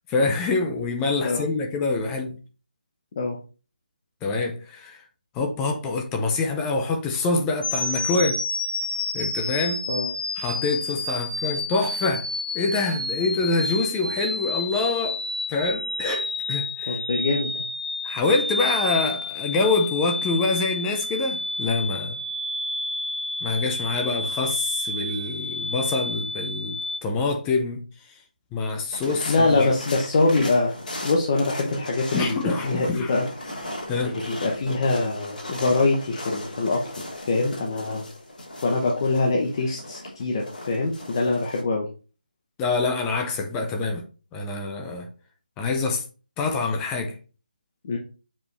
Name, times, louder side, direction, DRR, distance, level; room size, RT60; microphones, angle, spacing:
voice 1, 0.1-2.4 4.2-5.1 5.3-8.4 9.1-9.8 10.4-12.3 12.5-15.2 15.5-17.0 18.0-22.2 23.4-27.8 28.5-29.7 32.1-33.1 33.9-34.1 42.6-44.0 44.3-45.1 45.6-46.0 46.4-47.2, left 3 dB, 10° left, 0.5 m, -26 dB
sound 1, 7.6-27.0, left 2 dB, 80° left, 1.3 m, -30 dB
voice 2, 16.9-17.5 29.0-30.8 31.0-33.3 34.0-36.9 37.2-38.1 38.6-41.9 47.8-48.0, left 3 dB, 25° left, 0.8 m, -24 dB
sound 2, 28.9-41.6, left 1 dB, 55° left, 3.5 m, -37 dB
7.4 x 4.8 x 3.3 m
figure-of-eight pair, 175°, 5 cm